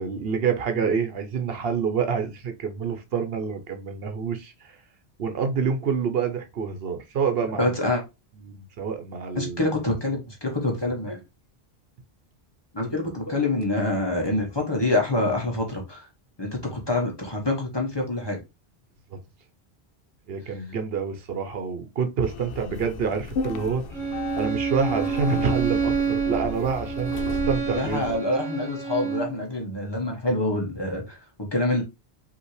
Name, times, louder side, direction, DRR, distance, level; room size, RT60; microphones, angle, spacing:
voice 1, 0.0-4.8 5.2-7.7 8.4-9.6 12.8-12.9 19.1-19.2 20.3-23.9 24.3-28.2, right 6 dB, 70° right, 0.9 m, -27 dB
voice 2, 7.6-8.0 9.3-11.2 12.7-16.1 16.4-18.4 27.7-31.8, left 2 dB, 25° left, 1.2 m, -26 dB
sound 1, 22.2-28.2, left 4 dB, 65° left, 0.8 m, -35 dB
Bowed string instrument, 23.9-29.4, right 6 dB, 5° left, 1.4 m, -28 dB
5.3 x 2.8 x 3.1 m
omnidirectional pair, 1.1 m